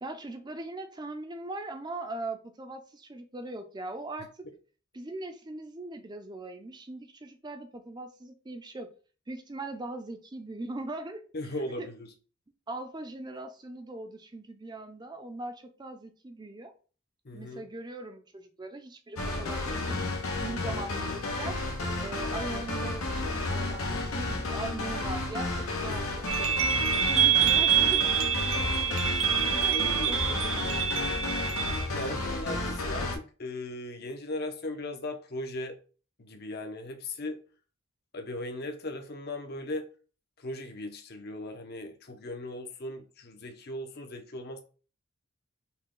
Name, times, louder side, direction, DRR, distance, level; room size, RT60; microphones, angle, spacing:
voice 1, 0.0-4.5 4.9-8.9 9.3-11.2 11.8-11.9 12.7-16.7 17.3-20.0 20.4-21.6 22.0-26.2 27.0-29.1 29.5-31.3, right 2 dB, 20° right, 0.5 m, -40 dB
voice 2, 11.3-12.1 17.2-17.7 25.9-26.0 26.4-26.6 29.2-29.3 29.7-30.2 31.9-35.8 36.2-37.4 38.1-39.9 40.4-44.6, left 1 dB, 50° left, 0.8 m, -38 dB
sound 1, 19.2-33.2, left 2 dB, 80° left, 0.9 m, -32 dB
sound 2, 26.3-31.9, right 9 dB, 70° right, 0.6 m, -26 dB
5.6 x 2.3 x 3.8 m
head